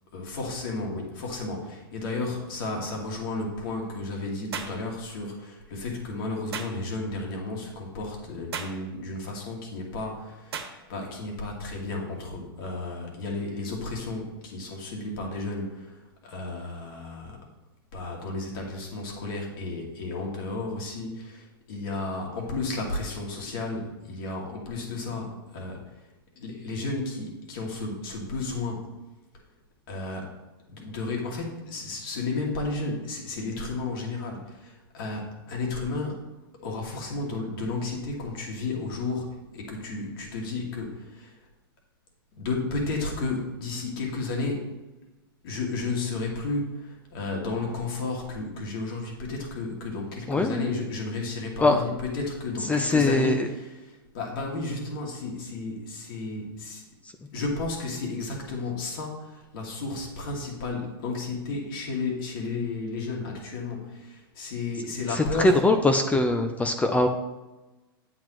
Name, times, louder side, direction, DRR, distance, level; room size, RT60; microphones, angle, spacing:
voice 1, 0.1-17.4 17.9-26.0 26.4-28.9 29.9-30.3 30.7-36.3 36.6-41.3 42.4-44.8 45.4-56.8 57.3-65.6, left 3 dB, 65° left, -1 dB, 2.5 m, -33 dB
sound 1, 4.5-4.8 6.5-6.8 8.5-8.8 10.5-10.8, right 6 dB, 85° right, 1.3 m, -34 dB
voice 2, 50.3-50.7 51.6-51.8 52.7-53.5 65.2-67.1, left 2 dB, 10° left, 6 dB, 0.6 m, -22 dB
8.6 x 7.6 x 3.1 m, 1.1 s
hypercardioid pair, 125°, 13 cm